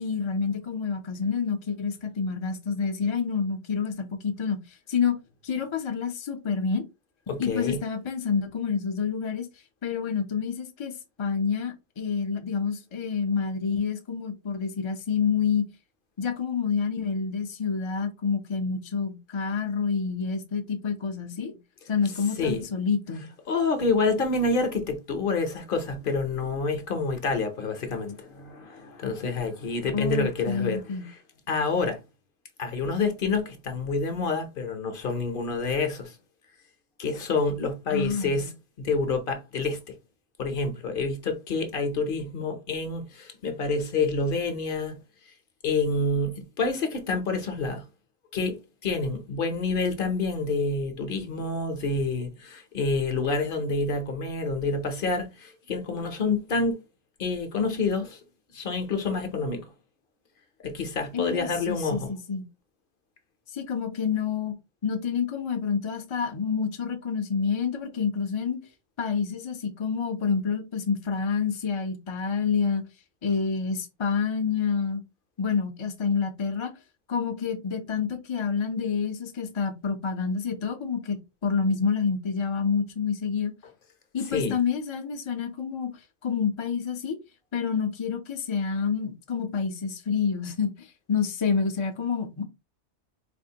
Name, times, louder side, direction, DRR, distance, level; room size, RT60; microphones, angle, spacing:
voice 1, 0.0-4.6 4.9-5.2 5.4-6.8 7.4-9.5 9.8-10.9 11.2-15.6 16.2-21.6 21.9-23.3 29.9-31.0 37.9-38.5 61.1-62.4 63.5-64.5 64.8-68.6 69.0-72.8 73.2-75.0 75.4-76.7 77.1-83.5 84.1-87.2 87.5-92.4, left 6 dB, 40° left, 0.5 m, -28 dB
voice 2, 7.3-7.8 22.4-22.7 23.5-31.2 31.5-32.0 32.6-36.2 37.0-38.5 38.8-39.9 40.4-45.0 45.6-47.9 48.3-56.8 57.2-58.2 58.5-59.7 60.6-62.1 84.3-84.6, left 3 dB, 55° left, 0.9 m, -28 dB
4.2 x 2.5 x 2.8 m
omnidirectional pair, 1.2 m